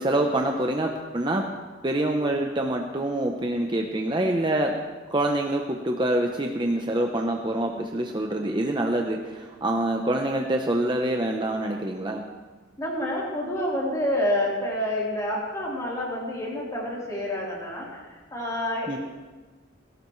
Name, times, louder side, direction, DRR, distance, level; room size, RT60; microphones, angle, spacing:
voice 1, 0.0-1.4 1.8-4.8 5.1-12.2 18.9-19.0, right 1 dB, 25° right, 2 dB, 0.8 m, -26 dB
voice 2, 12.8-19.0, left 1 dB, 20° left, -5 dB, 3.8 m, -28 dB
18.0 x 17.0 x 3.2 m, 1.3 s
head